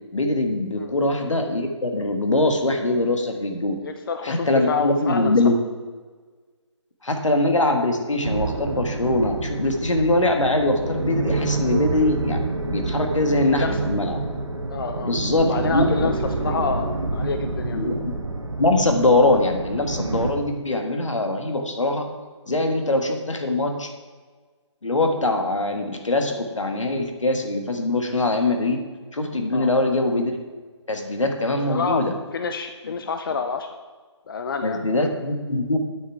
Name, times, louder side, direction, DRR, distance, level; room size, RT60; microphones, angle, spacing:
voice 1, 0.1-3.8 4.2-5.6 7.0-14.2 15.0-15.9 17.7-18.1 18.6-22.1 22.5-23.9 24.8-28.8 29.1-30.3 30.9-32.1 32.8-32.9 34.6-35.8, left 2 dB, 85° left, 4 dB, 1.6 m, -22 dB
voice 2, 0.8-1.1 3.8-5.4 13.5-13.7 14.7-15.1 15.4-17.8 29.5-29.7 31.7-32.0 32.3-33.8 34.3-34.8, left 5 dB, 45° left, 7 dB, 0.6 m, -28 dB
sound 1, 8.2-20.3, right 3 dB, 90° right, 1.3 m, -27 dB
9.3 x 7.0 x 4.7 m, 1.4 s
figure-of-eight pair, 155°, 16 cm